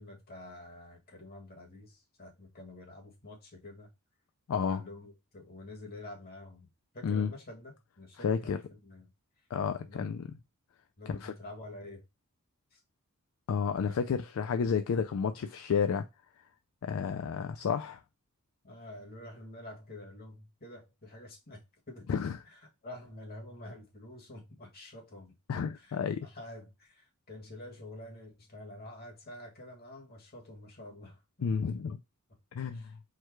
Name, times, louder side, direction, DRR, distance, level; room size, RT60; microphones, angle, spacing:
voice 1, 0.0-3.9 4.6-6.7 6.9-9.1 9.8-10.1 11.0-12.0 12.7-12.8 13.8-14.0 18.6-22.2 22.5-25.3 25.7-31.2 32.7-32.9, left 1 dB, 45° left, 1.6 m, -48 dB
voice 2, 4.5-4.8 7.0-7.3 8.2-8.6 9.5-10.3 11.1-11.3 13.5-16.1 16.8-18.0 22.1-22.4 25.5-26.2 31.4-32.0 32.5-32.8, left 6 dB, 65° left, 0.3 m, -31 dB
4.6 x 2.3 x 4.5 m
head